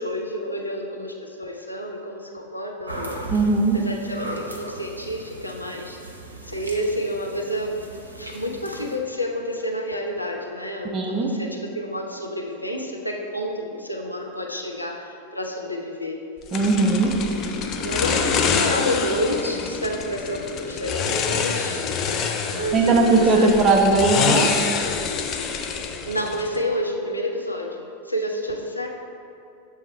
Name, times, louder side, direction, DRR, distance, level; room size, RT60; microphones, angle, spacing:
voice 1, 0.0-3.3 3.7-6.0 6.5-7.8 8.1-16.2 17.1-21.9 22.5-23.6 26.0-28.9, equal, 85° left, 0 dB, 0.6 m, -29 dB
sound 1, 2.9-9.0, right 1 dB, 80° right, 0.7 m, -37 dB
voice 2, 3.3-3.8 10.9-11.3 16.5-17.1 22.7-24.5, right 3 dB, 30° right, 1 dB, 0.8 m, -18 dB
sound 2, 16.5-26.6, left 6 dB, 35° left, 0.5 m, -26 dB
7.3 x 3.5 x 4.3 m, 2.6 s
figure-of-eight pair, 90°, 0 cm